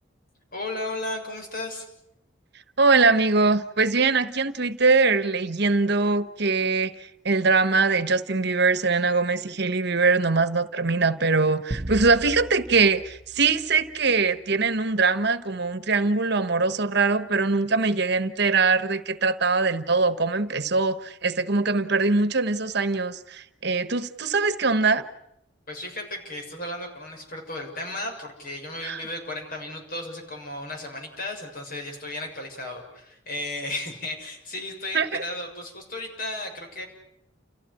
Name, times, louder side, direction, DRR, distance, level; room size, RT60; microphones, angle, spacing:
voice 1, 0.5-1.9 25.7-36.9, left 2 dB, 50° left, 3 dB, 7.0 m, -34 dB
voice 2, 2.8-6.9 7.2-25.0 28.8-29.0 34.9-35.2, right 4 dB, 60° right, 12 dB, 1.2 m, -22 dB
sound 1, 11.7-14.3, right 1 dB, 35° right, 1.0 m, -37 dB
30.0 x 15.5 x 10.0 m, 0.78 s
head